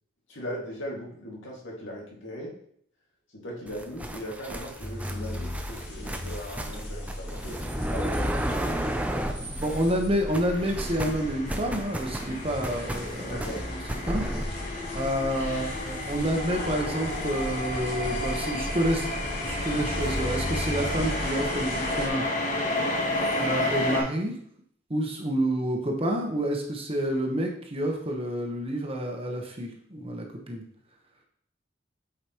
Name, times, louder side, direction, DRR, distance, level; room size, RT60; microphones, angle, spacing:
voice 1, 0.3-2.5 3.3-7.6 7.9-8.9 13.3-13.7 15.5-15.7, equal, 90° left, -3 dB, 2.2 m, -39 dB
sound 1, 3.7-10.1 10.3-14.5, right 1 dB, 10° right, 0.5 m, -33 dB
sound 2, 4.8-22.1, left 1 dB, 60° left, 2.1 m, -36 dB
voice 2, 9.6-13.4 13.7-13.8 14.0-14.2 14.9-22.2 23.4-24.4 24.9-30.6, right 1 dB, 30° right, 2 dB, 1.1 m, -29 dB
sound 3, 10.3-24.0, left 1 dB, 40° left, 1.2 m, -32 dB
8.2 x 4.9 x 3.0 m, 0.64 s
head